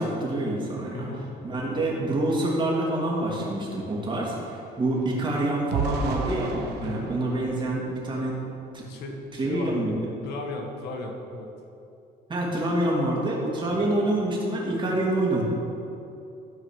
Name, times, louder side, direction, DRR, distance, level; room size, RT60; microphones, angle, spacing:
voice 1, 0.0-1.1 1.4-8.4 8.7-8.8 9.4-10.0 12.3-15.4, right 1 dB, 30° right, -3 dB, 2.7 m, -26 dB
voice 2, 0.9-1.3 1.7-1.9 6.8-7.1 8.9-9.9 10.2-11.5 13.7-13.9, left 2 dB, 80° left, 2 dB, 1.6 m, -36 dB
Missile Strike, 2.7-2.8 3.1-8.6 9.1-9.3 9.7-9.9, right 5 dB, 80° right, 1.0 m, -35 dB
13.0 x 4.8 x 6.4 m, 2.7 s
cardioid pair, 110°, 17 cm